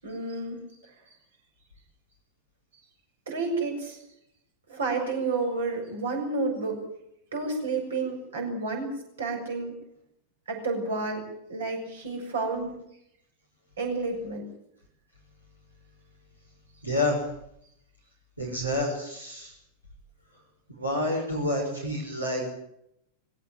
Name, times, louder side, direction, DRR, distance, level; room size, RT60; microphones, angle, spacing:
voice 1, 0.0-0.9 3.3-4.0 4.7-6.9 7.3-9.8 10.5-12.8 13.8-14.5, right 3 dB, 65° right, 3 dB, 7.1 m, -30 dB
voice 2, 16.8-17.2 18.4-19.5 20.8-22.6, left 1 dB, 85° right, 0 dB, 5.7 m, -28 dB
21.5 x 17.5 x 9.2 m, 0.77 s
figure-of-eight pair, 90°, 0 cm